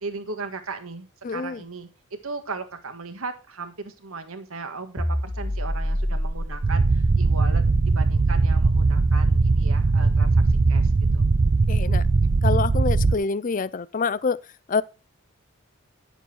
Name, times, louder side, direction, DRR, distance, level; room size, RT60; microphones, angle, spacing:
voice 1, 0.0-11.3, right 3 dB, 75° right, 1.6 m, -37 dB
voice 2, 1.2-1.6 11.7-12.1 12.4-14.4 14.7-14.8, left 4 dB, 35° left, 0.4 m, -26 dB
sound 1, 5.0-9.5, equal, 5° left, 0.9 m, -30 dB
sound 2, 6.6-13.1, right 3 dB, 45° right, 0.5 m, -20 dB
10.5 x 7.0 x 4.5 m
head